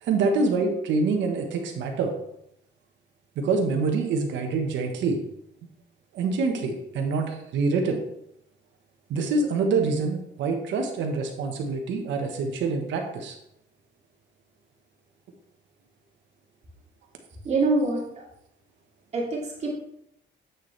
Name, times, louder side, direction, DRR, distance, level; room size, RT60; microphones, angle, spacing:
voice 1, 0.0-2.1 3.4-5.2 6.1-8.0 9.1-13.3, right 4 dB, 85° right, 3 dB, 1.3 m, -26 dB
voice 2, 17.4-18.0 19.1-19.7, right 2 dB, 35° right, -3 dB, 2.5 m, -24 dB
8.3 x 6.7 x 3.3 m, 0.79 s
cardioid pair, 160°, 19 cm